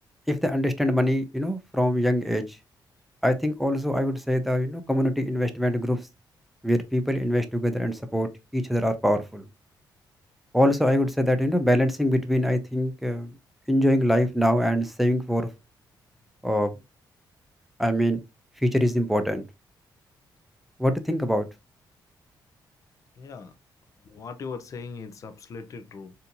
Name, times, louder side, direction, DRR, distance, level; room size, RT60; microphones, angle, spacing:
voice 1, 0.3-2.4 3.2-6.0 6.6-9.5 10.5-13.3 13.7-15.5 16.4-16.7 17.8-18.2 18.6-19.5 20.8-21.5, equal, ahead, 0.5 m, -24 dB
voice 2, 23.2-23.5 24.0-26.1, left 5 dB, 45° left, 0.6 m, -39 dB
4.1 x 2.6 x 2.7 m
cardioid pair, 155°, 8 cm